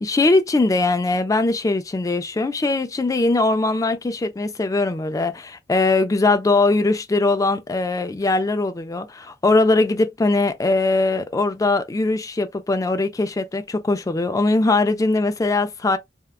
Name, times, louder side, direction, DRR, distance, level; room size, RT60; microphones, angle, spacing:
voice 1, 0.0-16.0, left 2 dB, 20° left, 0.3 m, -21 dB
3.5 x 2.2 x 2.2 m
head